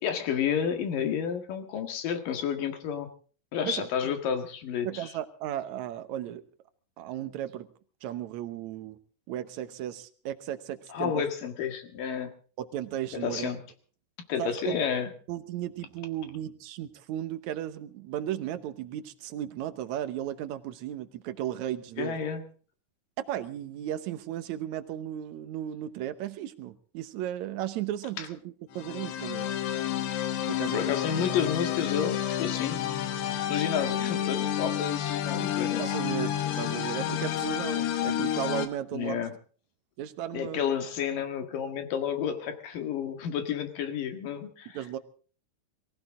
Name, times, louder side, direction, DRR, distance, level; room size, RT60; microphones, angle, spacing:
voice 1, 0.0-3.1 3.5-4.9 10.9-12.3 13.2-13.6 14.3-15.1 22.0-22.4 28.2-28.3 30.7-32.8 33.5-35.9 38.9-39.3 40.3-44.8, left 8 dB, 60° left, 7 dB, 3.2 m, -30 dB
voice 2, 3.6-4.1 4.8-6.4 7.0-7.7 8.0-9.0 9.3-11.2 12.6-13.5 14.4-14.8 15.3-22.2 23.2-29.5 30.4-30.8 35.8-39.2 40.0-40.6 44.7-45.0, right 11 dB, 80° right, 11 dB, 1.7 m, -35 dB
sound 1, 28.7-38.7, left 11 dB, 90° left, 3.4 m, -30 dB
23.0 x 16.0 x 3.7 m, 0.41 s
omnidirectional pair, 4.6 m